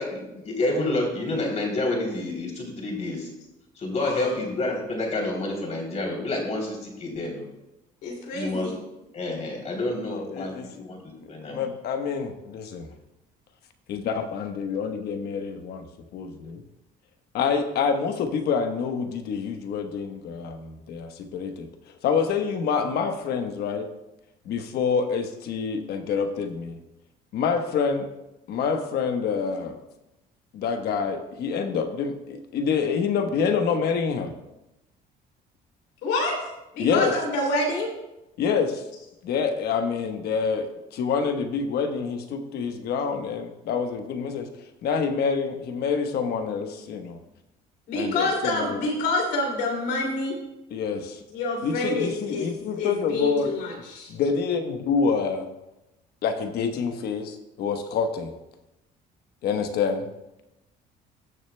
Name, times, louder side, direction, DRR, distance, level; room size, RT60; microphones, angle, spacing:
voice 1, 0.0-3.3 3.8-7.4 8.3-8.7 9.1-11.0 11.3-11.7, left 2 dB, 40° left, 0 dB, 3.0 m, -29 dB
voice 2, 4.0-4.3 8.0-8.8 36.0-36.4 36.7-37.9 47.9-50.4 51.3-52.5 52.8-54.1, left 2 dB, 90° left, -1 dB, 2.6 m, -27 dB
voice 3, 10.1-10.7 11.2-12.9 13.9-15.8 16.1-16.6 17.3-21.7 22.0-23.9 24.4-26.8 27.3-28.1 28.5-29.8 30.5-34.3 36.8-37.1 38.4-38.8 39.2-44.5 44.8-47.2 47.9-48.8 50.7-51.2 51.6-53.6 54.1-55.5 56.2-58.3 59.4-60.1, left 6 dB, 70° left, 6 dB, 1.1 m, -27 dB
19.0 x 6.5 x 2.2 m, 0.94 s
cardioid pair, 110°, 17 cm